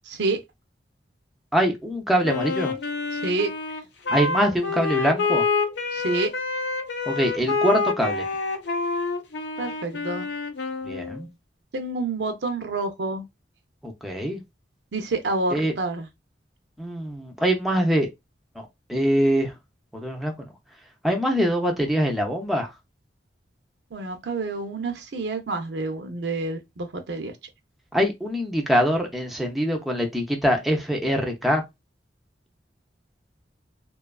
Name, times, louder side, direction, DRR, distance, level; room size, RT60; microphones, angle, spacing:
voice 1, 0.1-0.4 3.1-3.5 5.9-6.3 9.6-10.3 11.7-13.2 14.9-16.1 23.9-27.3, right 3 dB, 70° right, 0.5 m, -28 dB
voice 2, 1.5-2.8 4.1-5.4 7.1-8.3 10.8-11.3 13.8-14.4 15.5-15.7 16.8-18.1 18.6-19.5 19.9-20.3 21.0-22.7 27.9-31.6, equal, ahead, 0.4 m, -23 dB
Wind instrument woodwind instrument, 2.2-11.2, left 4 dB, 75° left, 0.5 m, -27 dB
2.6 x 2.3 x 2.2 m
head